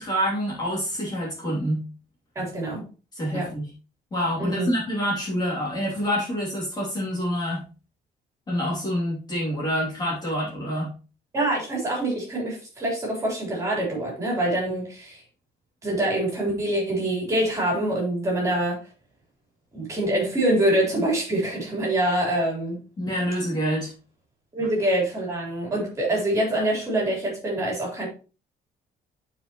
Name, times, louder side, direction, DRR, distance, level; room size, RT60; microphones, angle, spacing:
voice 1, 0.0-1.8 3.1-3.7 4.1-7.6 8.5-10.9 23.0-23.9, equal, 25° left, 2.8 m, -27 dB
voice 2, 2.4-2.8 3.3-3.5 4.4-4.7 11.3-15.2 15.8-18.8 19.7-22.8 24.5-28.1, right 1 dB, 20° right, 3.6 m, -25 dB
11.0 x 4.9 x 3.0 m
cardioid pair, 180°, 16 cm